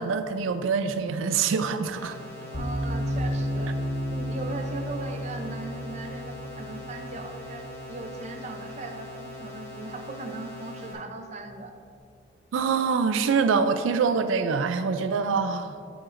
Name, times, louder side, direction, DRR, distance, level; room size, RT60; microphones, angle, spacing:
voice 1, 0.0-2.2 12.5-15.8, right 5 dB, 85° right, 9 dB, 0.4 m, -25 dB
sound 1, 1.9-10.9, left 1 dB, 15° left, 1.4 m, -42 dB
sound 2, 2.5-9.6, equal, 45° left, 1.2 m, -33 dB
voice 2, 2.5-3.8 4.1-11.7, right 2 dB, 35° right, 5 dB, 0.5 m, -38 dB
8.5 x 7.9 x 2.5 m, 2.5 s
head